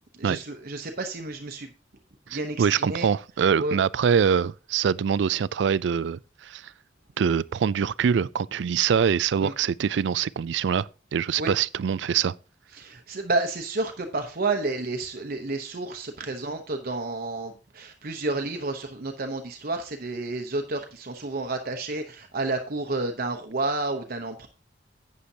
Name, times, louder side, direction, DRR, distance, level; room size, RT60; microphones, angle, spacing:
voice 1, 0.2-1.7 2.3-3.1 3.6-3.8 9.4-9.5 11.4-11.5 12.7-24.5, right 2 dB, 55° right, 0.9 m, -30 dB
voice 2, 2.3-6.7 7.2-12.3, right 7 dB, 70° right, 0.4 m, -24 dB
11.5 x 8.5 x 2.8 m
head